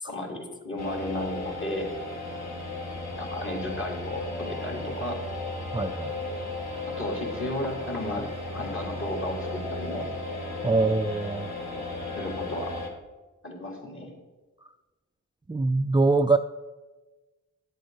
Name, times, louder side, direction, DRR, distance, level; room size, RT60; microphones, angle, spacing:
voice 1, 0.1-1.9 3.2-5.2 7.0-8.3 8.5-10.1 12.2-12.8 13.4-14.1, left 1 dB, 40° left, -1 dB, 3.2 m, -33 dB
sound 1, 0.8-12.9, left 2 dB, 55° left, 2.4 m, -35 dB
voice 2, 5.7-6.1 10.6-11.5 15.5-16.4, right 3 dB, 15° right, 7 dB, 0.4 m, -23 dB
11.5 x 7.8 x 4.8 m, 1.2 s
cardioid pair, 50°, 31 cm